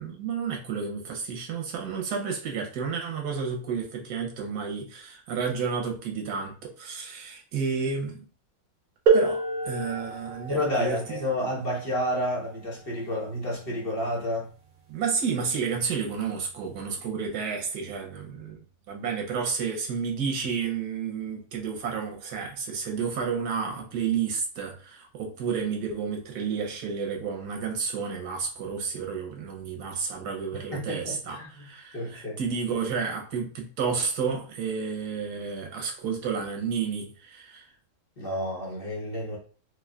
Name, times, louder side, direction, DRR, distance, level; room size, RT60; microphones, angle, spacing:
voice 1, 0.0-8.1 9.1-11.2 14.9-18.6 18.9-37.7, right 6 dB, 85° right, 2 dB, 1.4 m, -31 dB
sound 1, 9.1-14.5 15.5-15.6 16.5-16.7, right 4 dB, 70° right, 1.6 m, -29 dB
voice 2, 10.5-14.5 30.7-31.7 31.9-32.4 38.2-39.4, left 1 dB, 40° left, -3 dB, 1.1 m, -30 dB
4.7 x 2.4 x 2.3 m, 0.38 s
omnidirectional pair, 1.6 m